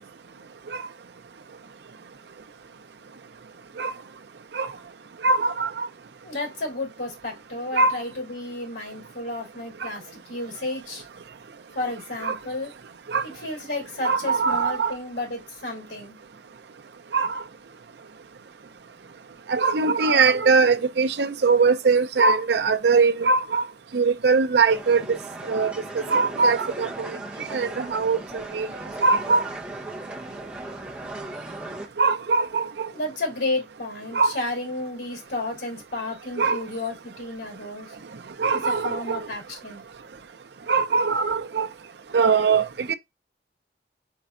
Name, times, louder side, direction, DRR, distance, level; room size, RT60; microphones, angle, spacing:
voice 1, 5.2-5.9 7.8-8.0 9.8-9.9 12.2-12.4 13.1-13.2 14.0-14.9 17.1-17.4 19.5-23.6 23.9-25.0 25.5-25.7 26.1-27.2 27.5-28.7 29.0-29.4 32.0-32.9 34.1-34.3 36.4-36.6 38.4-39.2 40.7-41.7 42.1-42.9, right 4 dB, 70° right, 0.5 m, -21 dB
voice 2, 6.2-11.1 11.7-12.7 13.2-16.2 32.9-37.9 38.5-39.8, left 2 dB, 80° left, 3.0 m, -32 dB
sound 1, 24.7-31.9, right 2 dB, 5° right, 0.8 m, -37 dB
4.6 x 4.1 x 2.5 m
head